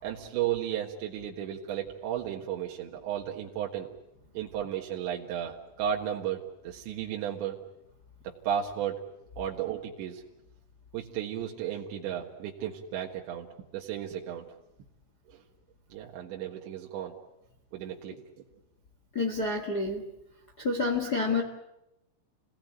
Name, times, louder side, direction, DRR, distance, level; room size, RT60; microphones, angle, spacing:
voice 1, 0.0-3.9 4.4-7.6 8.2-9.0 9.4-10.2 10.9-14.5 15.3-15.4 15.9-17.1 17.7-18.2, right 10 dB, 80° right, 0 dB, 3.9 m, -34 dB
voice 2, 19.1-20.0 20.6-21.4, left 3 dB, 50° left, 3 dB, 1.2 m, -28 dB
28.5 x 19.0 x 9.2 m, 0.88 s
omnidirectional pair, 5.1 m